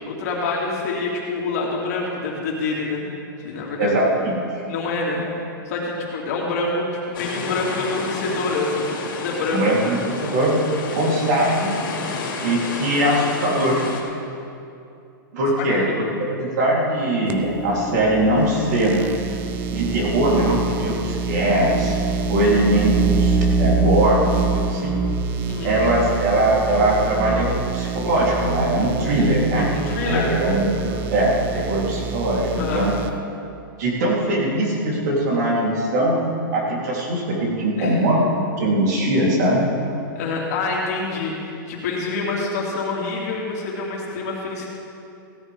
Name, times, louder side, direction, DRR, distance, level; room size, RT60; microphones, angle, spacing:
voice 1, 0.1-3.1 3.4-3.9 4.7-9.6 25.5-25.8 29.7-30.3 32.6-32.9 37.8-38.0 40.1-44.7, left 3 dB, 45° left, -3 dB, 2.6 m, -26 dB
voice 2, 3.8-4.6 9.5-10.6 10.9-11.7 12.4-13.8 15.3-15.8 16.4-19.0 19.7-21.9 22.3-25.0 25.6-29.7 30.0-32.9 33.8-36.2 36.5-38.3 38.6-39.7, right 1 dB, 50° right, -4 dB, 3.4 m, -21 dB
sound 1, 7.1-14.0, left 3 dB, 70° left, 2.6 m, -31 dB
sound 2, 17.3-33.1, right 4 dB, 15° right, 0.4 m, -25 dB
17.0 x 13.0 x 3.6 m, 2.6 s
supercardioid pair, 170°, 12 cm